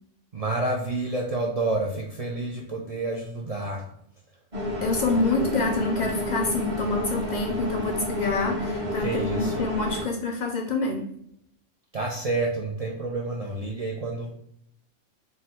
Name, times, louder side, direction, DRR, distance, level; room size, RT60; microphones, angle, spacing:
voice 1, 0.3-3.9 9.0-9.6 11.9-14.3, right 2 dB, 70° right, -1 dB, 0.3 m, -29 dB
sound 1, 4.5-10.0, left 1 dB, 35° right, 0.7 m, -29 dB
voice 2, 4.8-11.1, left 3 dB, 75° left, 2 dB, 0.4 m, -27 dB
3.7 x 2.2 x 4.2 m, 0.73 s
omnidirectional pair, 1.3 m